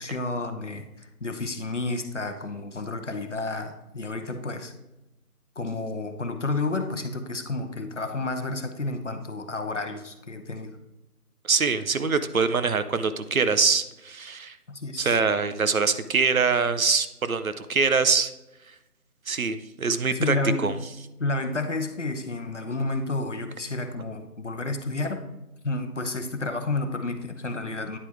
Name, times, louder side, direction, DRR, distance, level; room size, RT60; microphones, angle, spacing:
voice 1, 0.0-4.7 5.6-10.8 14.7-15.2 20.1-20.8 21.2-25.2 25.6-28.0, left 2 dB, 50° left, 7 dB, 0.8 m, -31 dB
voice 2, 11.5-14.6 15.0-18.3 19.3-20.7, right 5 dB, 65° right, 11 dB, 0.7 m, -24 dB
9.8 x 4.7 x 3.4 m, 0.95 s
figure-of-eight pair, 175°, 46 cm